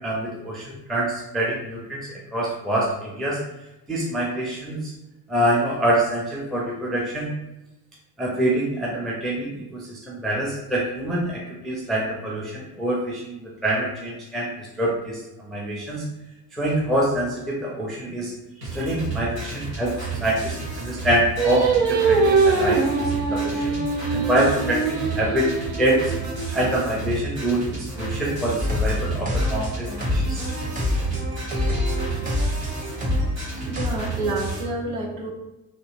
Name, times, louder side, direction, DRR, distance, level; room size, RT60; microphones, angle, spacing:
voice 1, 0.0-3.4 3.9-4.9 5.3-7.3 8.2-16.0 16.5-18.3 18.7-19.9 20.2-23.8 24.1-25.5 25.8-26.1 26.5-30.4, right 1 dB, ahead, -4 dB, 0.4 m, -25 dB
sound 1, 18.6-34.6, right 4 dB, 85° right, 1.0 m, -32 dB
Singing, 21.4-26.7, right 4 dB, 40° right, 1.1 m, -23 dB
sound 2, 28.6-33.9, left 2 dB, 15° right, 0.8 m, -26 dB
voice 2, 33.6-35.3, right 2 dB, 60° right, -6 dB, 1.3 m, -28 dB
2.9 x 2.6 x 2.4 m, 0.96 s
figure-of-eight pair, 55°, 47 cm